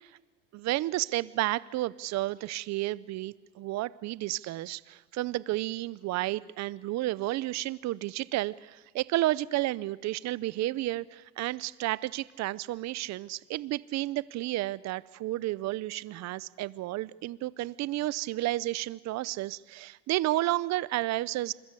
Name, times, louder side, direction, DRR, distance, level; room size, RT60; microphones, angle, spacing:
voice 1, 0.5-21.5, right 16 dB, 60° right, 19 dB, 0.7 m, -31 dB
27.0 x 21.5 x 8.4 m, 1.2 s
cardioid pair, 110°, 30 cm